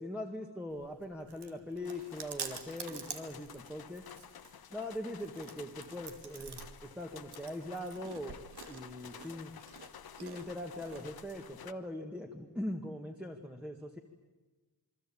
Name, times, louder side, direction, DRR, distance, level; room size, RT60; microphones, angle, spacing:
voice 1, 0.0-4.0 4.7-9.5 10.2-14.0, left 1 dB, 5° right, 1 dB, 1.8 m, -41 dB
Chewing mastication, 0.7-11.4, right 6 dB, 75° right, 2.5 m, -49 dB
sound 1, 1.8-11.7, left 8 dB, 65° left, 1.2 m, -52 dB
27.5 x 23.0 x 8.7 m, 1.2 s
wide cardioid pair, 155°, 40 cm